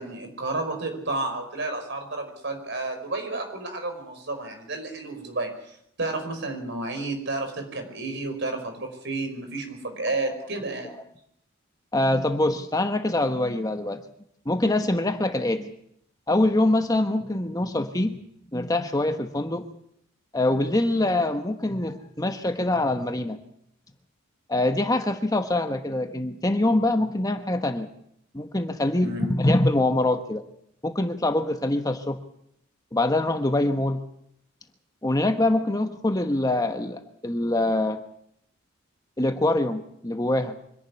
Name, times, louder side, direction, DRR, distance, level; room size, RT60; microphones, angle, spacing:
voice 1, 0.0-10.9 29.0-29.3, right 2 dB, 55° right, 6 dB, 5.2 m, -31 dB
voice 2, 11.9-14.0 14.4-15.7 16.3-18.2 18.5-19.6 20.3-23.4 24.5-27.9 28.3-30.4 30.8-32.2 32.9-34.0 35.0-38.0 39.2-40.6, left 1 dB, 20° left, 7 dB, 1.1 m, -24 dB
25.0 x 11.5 x 9.8 m, 0.72 s
head